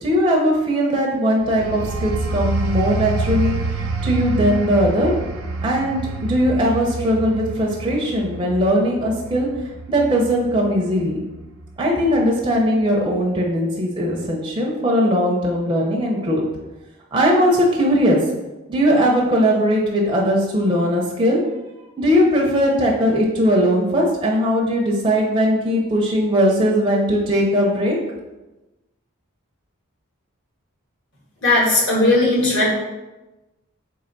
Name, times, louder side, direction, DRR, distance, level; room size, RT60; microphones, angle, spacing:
voice 1, 0.0-5.2 5.6-9.5 9.9-11.2 11.8-16.4 17.1-18.2 18.7-21.4 22.0-28.0, equal, 20° right, -2 dB, 0.5 m, -19 dB
sound 1, 1.4-11.8 12.2-12.5, right 3 dB, 80° right, 0.5 m, -27 dB
voice 2, 31.4-32.6, left 2 dB, 55° left, -5 dB, 1.3 m, -17 dB
3.3 x 3.2 x 3.9 m, 1.1 s
head